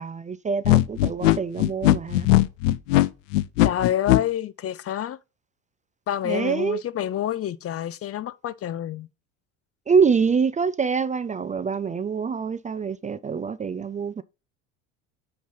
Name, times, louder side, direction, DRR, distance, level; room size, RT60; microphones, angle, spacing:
voice 1, 0.0-2.3 6.2-6.8 9.9-14.2, right 5 dB, 20° right, 0.4 m, -25 dB
sound 1, 0.6-4.2, left 15 dB, 80° left, 0.7 m, -19 dB
voice 2, 3.6-5.2 6.1-9.1, left 11 dB, 40° left, 0.7 m, -28 dB
9.3 x 3.3 x 5.6 m
hypercardioid pair, 80°, 37 cm